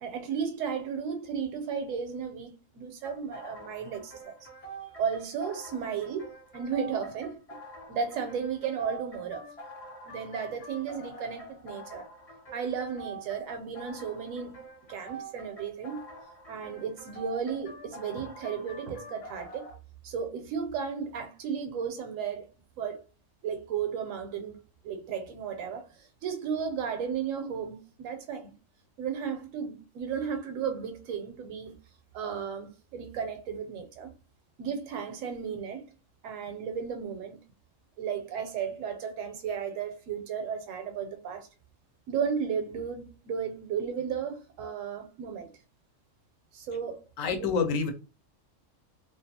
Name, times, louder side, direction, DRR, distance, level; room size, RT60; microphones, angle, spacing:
voice 1, 0.0-4.4 5.0-7.6 7.9-9.5 10.1-12.1 12.5-14.6 14.9-16.0 16.5-19.7 20.0-22.5 22.8-23.0 23.4-24.6 24.8-28.5 29.0-31.7 32.1-34.1 34.6-35.9 36.2-37.4 38.0-41.5 42.1-45.5 46.5-47.1, right 7 dB, 80° right, 0.9 m, -34 dB
sound 1, 3.0-19.7, right 2 dB, 50° left, 0.4 m, -46 dB
voice 2, 47.2-47.9, left 5 dB, 80° left, 1.0 m, -27 dB
2.5 x 2.3 x 2.7 m
omnidirectional pair, 1.4 m